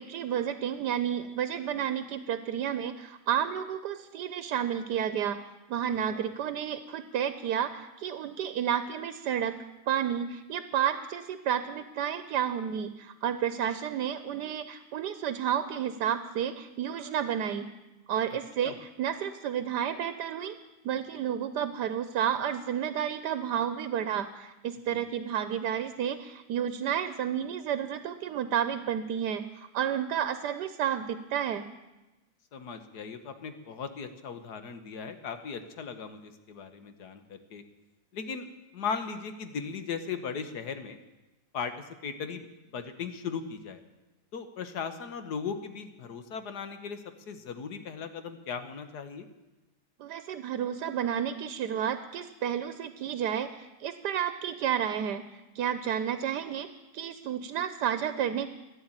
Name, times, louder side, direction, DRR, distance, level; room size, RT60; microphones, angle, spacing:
voice 1, 0.0-5.4 5.7-9.5 9.9-17.7 18.1-20.6 20.8-31.6 50.0-55.2 55.5-58.5, right 9 dB, 90° right, 11 dB, 1.3 m, -31 dB
voice 2, 32.5-37.6 38.1-38.5 38.7-41.0 41.5-42.5 42.7-43.8 44.3-49.3, left 6 dB, 75° left, 9 dB, 1.7 m, -38 dB
14.5 x 10.0 x 8.8 m, 1.1 s
omnidirectional pair, 1.7 m